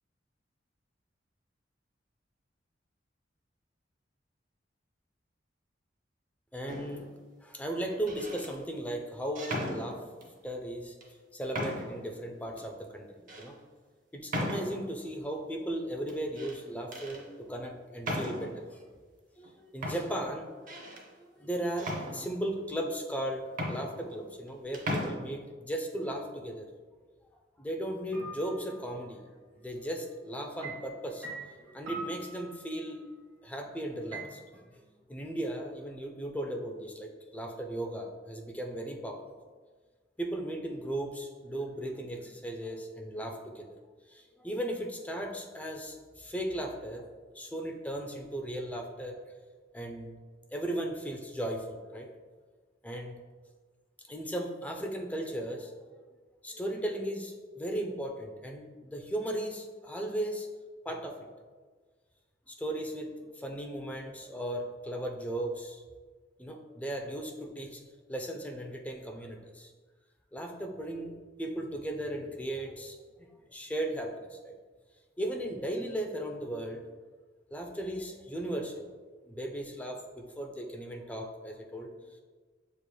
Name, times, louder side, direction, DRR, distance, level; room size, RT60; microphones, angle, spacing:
voice 1, 6.5-7.1 7.4-10.0 10.4-10.9 11.3-13.6 14.1-18.8 19.4-20.5 21.2-26.7 27.6-29.2 29.5-31.3 31.6-33.0 33.4-39.3 40.2-43.8 44.1-47.0 47.3-49.2 49.7-50.1 50.5-52.1 52.8-53.2 54.1-55.7 56.4-60.5 60.8-61.3 62.5-65.8 66.4-67.8 68.1-69.7 70.3-71.1 71.4-74.5 75.2-76.8 77.5-78.9 79.3-81.9, right 1 dB, 10° left, 2 dB, 0.4 m, -36 dB
sound 1, 6.7-7.1 7.9-8.5 9.4-10.3 11.0-11.1 11.5-12.1 12.6-12.7 13.3-13.5 14.3-15.0 16.1-16.6 16.9-17.2 18.0-18.7 19.4-19.5 19.8-21.1 21.8-22.6 23.2-23.3 23.5-24.5 24.7-25.1, equal, 45° right, 0.7 m, -36 dB
sound 2, 28.1-28.9 30.6-33.0 34.1-34.2, right 2 dB, 75° right, 0.9 m, -43 dB
6.8 x 3.1 x 2.2 m, 1.4 s
head